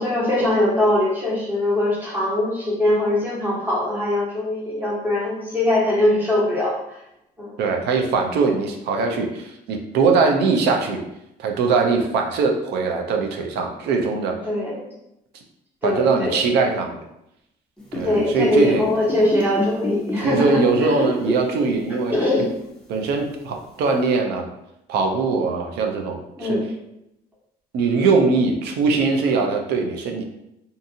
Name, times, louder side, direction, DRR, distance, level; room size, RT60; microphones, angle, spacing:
voice 1, 0.0-7.0 7.4-7.6 14.4-14.8 15.8-16.3 18.0-21.0 21.9-22.5 26.4-26.7, left 1 dB, 10° right, -6 dB, 1.0 m, -22 dB
voice 2, 7.6-11.0 11.4-14.4 15.8-17.0 17.9-18.9 20.2-22.1 22.9-24.5 24.9-26.6 27.7-30.2, right 4 dB, 75° right, 3 dB, 0.5 m, -21 dB
sound 1, 17.8-21.8 22.1-22.3 23.2-23.3, equal, 5° left, 0.6 m, -27 dB
2.6 x 2.5 x 2.6 m, 0.84 s
cardioid pair, 110°, 17 cm